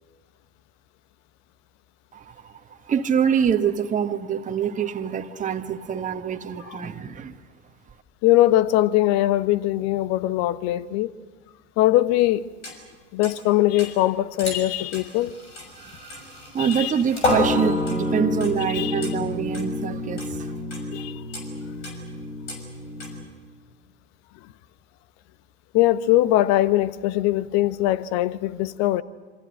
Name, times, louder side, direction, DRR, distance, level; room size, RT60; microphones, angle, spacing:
voice 1, 2.1-2.6 2.9-7.4 15.8-16.2 16.5-20.5, right 7 dB, 20° right, 1.4 m, -25 dB
voice 2, 8.2-11.1 11.8-12.5 13.1-15.4 16.6-16.9 18.6-19.1 20.9-21.2 25.7-29.0, left 15 dB, 50° left, 1.1 m, -21 dB
sound 1, 12.6-12.7 13.2-13.3 13.8-13.9 14.4-14.7 14.9-23.2, left 2 dB, 80° left, 6.1 m, -28 dB
27.0 x 26.0 x 6.5 m
figure-of-eight pair, 80°, 34 cm